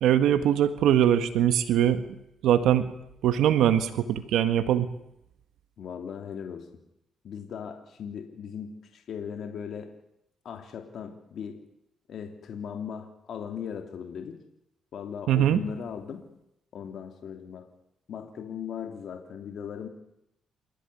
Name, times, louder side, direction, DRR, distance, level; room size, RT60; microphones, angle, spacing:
voice 1, 0.0-2.0 2.4-2.9 3.2-4.9 15.3-15.6, right 10 dB, 80° right, 10 dB, 1.6 m, -22 dB
voice 2, 5.8-6.7 7.2-9.9 10.4-11.6 12.1-14.4 14.9-16.2 16.7-17.7 18.1-19.9, left 7 dB, 65° left, 5 dB, 3.0 m, -38 dB
28.5 x 15.5 x 10.0 m, 0.81 s
cardioid pair, 90°, 0 cm